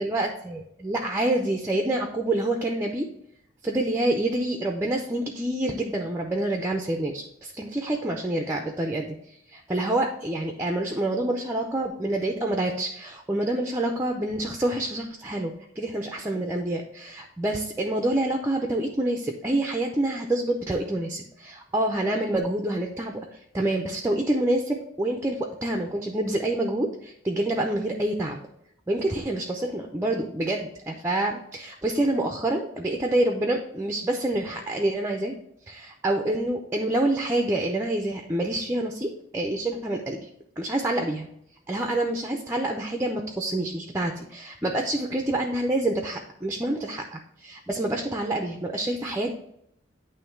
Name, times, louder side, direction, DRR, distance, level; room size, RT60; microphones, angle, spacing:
voice 1, 0.0-3.1 3.6-9.2 9.5-23.3 23.5-28.4 28.9-35.3 35.7-40.3 40.6-41.3 41.7-49.3, right 1 dB, 15° right, 3 dB, 0.5 m, -27 dB
9.1 x 3.1 x 4.5 m, 0.74 s
head